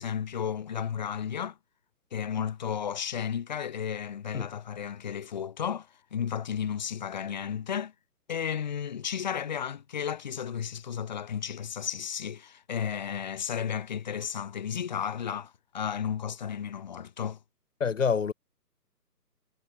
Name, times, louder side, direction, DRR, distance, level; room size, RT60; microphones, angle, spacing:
voice 1, 0.0-1.6 2.1-7.9 8.3-17.4, left 8 dB, 25° left, 2.0 m, -33 dB
voice 2, 17.8-18.3, left 6 dB, 50° left, 0.6 m, -26 dB
hypercardioid pair, 170°, 49 cm